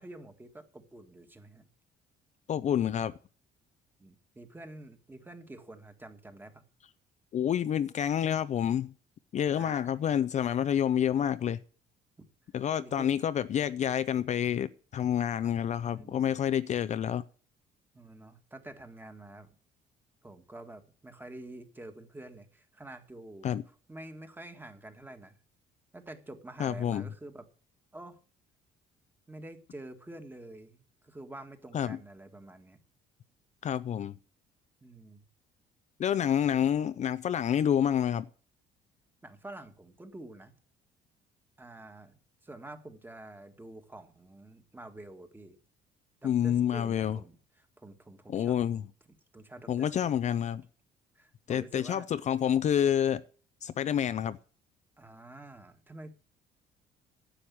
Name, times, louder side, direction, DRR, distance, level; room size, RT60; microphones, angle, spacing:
voice 1, 0.0-1.7 4.0-6.6 9.5-10.0 12.8-13.1 15.4-15.5 15.9-16.4 17.9-19.5 20.2-25.4 25.9-27.4 27.9-28.2 29.3-32.8 34.8-35.3 39.2-40.5 41.6-42.2 42.4-45.6 46.2-48.6 49.3-50.2 51.1-52.1 55.0-56.1, right 2 dB, 10° right, 1.7 m, -48 dB
voice 2, 2.5-3.1 7.3-8.9 9.3-11.6 12.5-17.2 23.4-23.6 26.6-27.1 31.7-32.0 33.6-34.1 36.0-38.3 46.2-47.2 48.3-48.8 49.7-50.6 51.5-53.2 53.6-54.4, left 9 dB, 45° left, 0.5 m, -28 dB
10.0 x 7.9 x 8.5 m
cardioid pair, 110°, 17 cm